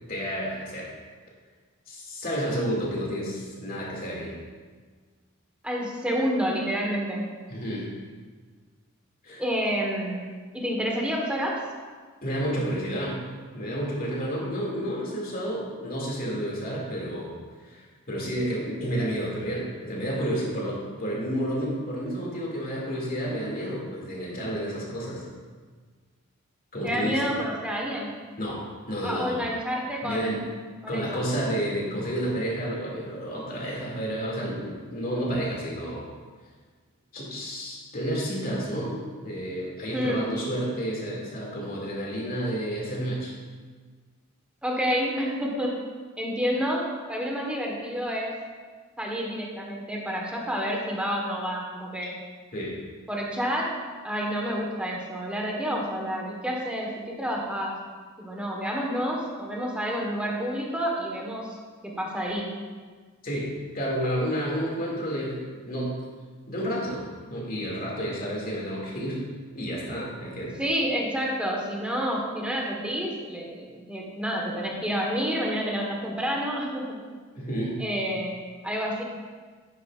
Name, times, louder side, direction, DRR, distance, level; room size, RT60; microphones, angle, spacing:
voice 1, 0.1-0.9 1.9-4.3 7.5-7.9 9.2-9.4 12.2-13.2 13.5-17.3 17.6-25.2 26.7-27.2 28.4-29.4 30.0-30.4 30.9-36.1 37.1-43.3 52.5-52.7 63.2-66.0 66.5-67.0 67.3-69.3 69.5-70.6 77.4-77.8, equal, 45° left, -4 dB, 2.4 m, -30 dB
voice 2, 5.6-7.3 9.4-10.3 10.5-11.6 26.8-28.1 29.0-30.4 30.8-31.2 39.9-40.2 44.6-45.8 46.2-48.3 49.0-52.1 53.1-53.7 54.0-57.8 58.2-61.6 61.8-62.5 70.6-77.0 77.8-78.4 78.6-79.0, equal, 5° right, -2 dB, 1.3 m, -29 dB
10.5 x 9.6 x 2.5 m, 1.5 s
head